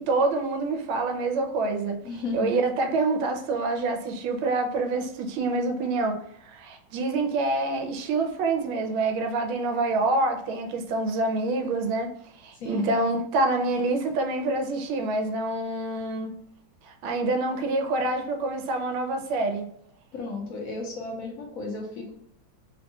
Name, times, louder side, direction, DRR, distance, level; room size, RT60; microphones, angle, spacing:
voice 1, 0.0-2.0 2.3-12.1 12.4-16.3 16.8-19.7, right 2 dB, 90° right, 1.4 m, -26 dB
voice 2, 2.0-2.5 12.5-12.9 20.1-22.1, left 3 dB, 65° left, 0.9 m, -34 dB
3.5 x 2.3 x 2.7 m
omnidirectional pair, 2.1 m